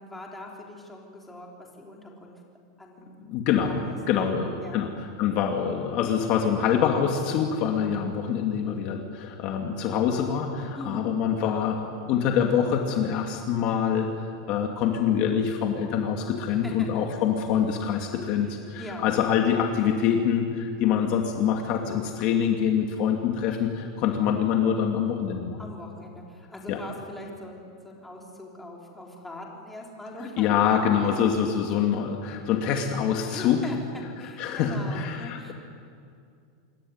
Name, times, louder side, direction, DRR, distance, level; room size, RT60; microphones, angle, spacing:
voice 1, 0.0-2.4 2.8-3.2 3.7-4.8 10.8-11.1 16.6-17.2 18.8-19.1 21.0-21.2 25.6-31.1 33.3-35.5, left 1 dB, 5° left, -2 dB, 3.9 m, -42 dB
voice 2, 3.3-3.8 4.1-14.1 14.5-25.6 26.7-26.8 30.4-33.6 34.4-35.5, left 8 dB, 40° left, 2 dB, 2.4 m, -25 dB
27.0 x 22.5 x 9.6 m, 2.3 s
supercardioid pair, 165°, 2 cm